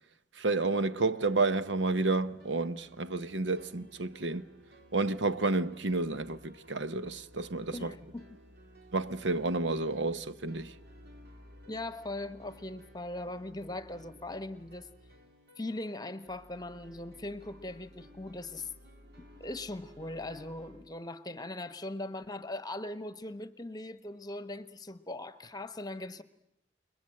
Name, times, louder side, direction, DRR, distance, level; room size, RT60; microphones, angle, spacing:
voice 1, 0.3-4.4 4.9-8.0 8.9-10.7, right 3 dB, 85° right, 1.0 m, -30 dB
sound 1, 1.1-20.9, equal, 60° right, 2.9 m, -56 dB
voice 2, 7.7-8.3 11.7-14.9 15.6-18.7 19.4-26.2, left 2 dB, 20° left, 1.1 m, -40 dB
29.0 x 22.0 x 7.7 m
head